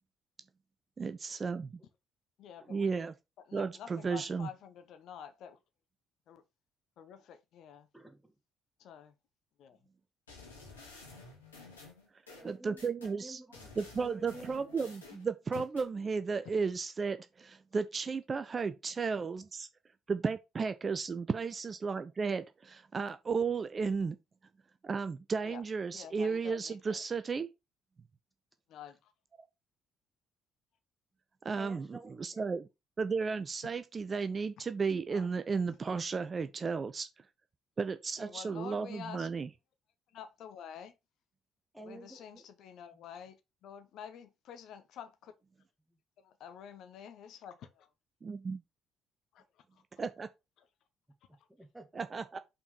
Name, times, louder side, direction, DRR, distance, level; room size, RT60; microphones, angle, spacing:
voice 1, 1.0-1.8 2.7-3.1 3.5-4.5 12.4-13.4 13.8-19.7 20.1-24.2 24.8-27.5 31.4-32.6 33.0-37.1 37.8-39.5 48.2-48.6 50.0-50.3 52.0-52.4, right 5 dB, 35° right, 0.6 m, -34 dB
voice 2, 2.4-3.0 3.5-5.6 6.3-6.4 7.0-7.9 8.8-9.1 9.6-9.8 15.5-15.6 25.4-25.6 25.9-27.0 28.7-29.1 35.1-35.3 35.7-35.8 38.2-39.3 40.1-41.0 41.8-45.3 46.2-47.8 49.3-49.8 50.6-50.7 51.4-51.5, left 8 dB, 60° left, 1.1 m, -49 dB
voice 3, 7.9-8.4 12.3-14.6 31.5-32.6 38.2-38.3 41.7-42.5 42.9-43.0 45.9-46.0 51.2-52.4, right 2 dB, 5° right, 2.1 m, -52 dB
sound 1, 10.3-13.1 13.5-15.9, left 3 dB, 85° left, 2.2 m, -52 dB
5.6 x 4.4 x 5.2 m
figure-of-eight pair, 45°, 0 cm